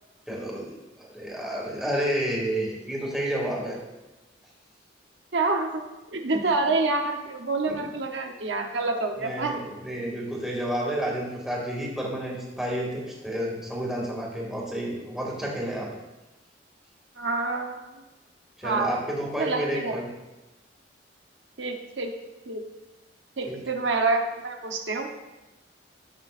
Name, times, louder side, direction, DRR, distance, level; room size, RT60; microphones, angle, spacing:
voice 1, 0.3-0.7 1.0-3.8 7.7-7.8 9.2-15.9 18.6-20.1 23.4-23.6, right 1 dB, 5° right, -4 dB, 2.2 m, -30 dB
voice 2, 5.3-9.6 17.2-17.9 18.6-18.9 19.4-20.0 21.6-22.1 22.5-22.6 23.4-25.1, right 3 dB, 80° right, 3 dB, 0.9 m, -27 dB
14.0 x 8.0 x 2.5 m, 1.1 s
head